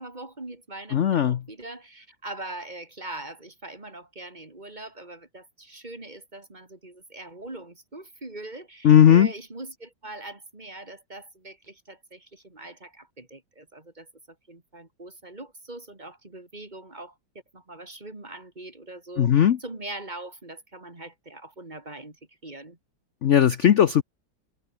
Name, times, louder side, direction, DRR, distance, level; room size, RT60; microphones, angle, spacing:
voice 1, 0.0-14.1 14.5-17.1 17.5-22.2 22.4-22.8, right 2 dB, 25° right, 2.9 m, -41 dB
voice 2, 0.9-1.4 8.8-9.3 19.2-19.6 23.2-24.0, left 9 dB, 55° left, 0.9 m, -17 dB
omnidirectional pair, 2.0 m